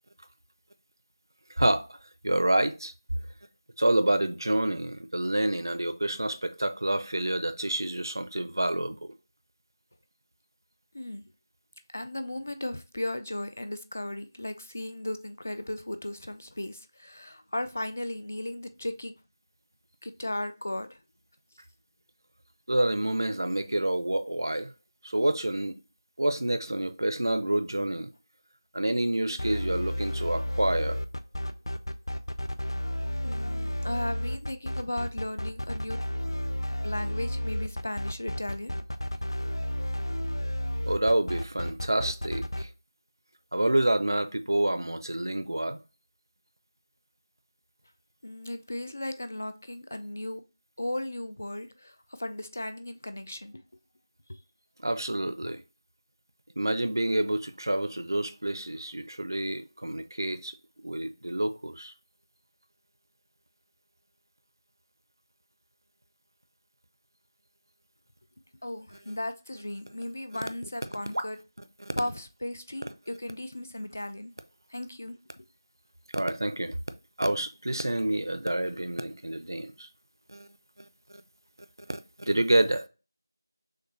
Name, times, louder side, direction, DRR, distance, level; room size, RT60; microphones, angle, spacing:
voice 1, 1.6-2.0 2.2-2.9 3.8-9.1 22.7-24.7 25.0-25.8 26.2-28.1 28.7-31.0 40.9-42.7 43.5-45.8 54.8-55.6 56.6-60.5 60.8-61.9 69.1-69.2 71.1-71.2 71.8-71.9 76.1-76.8 77.2-79.9 80.3-80.5 80.8-80.9 81.9-82.9, right 1 dB, 60° right, 0.5 m, -28 dB
voice 2, 11.9-19.1 20.0-21.0 33.2-36.0 36.8-38.7 48.2-50.4 50.8-53.6 54.3-54.4 55.4-55.6 68.6-71.4 72.0-74.3 74.7-75.5, left 1 dB, 30° left, 0.3 m, -36 dB
sound 1, 29.4-42.6, equal, 85° left, 0.6 m, -32 dB
6.4 x 2.3 x 3.1 m
figure-of-eight pair, 180°, 2 cm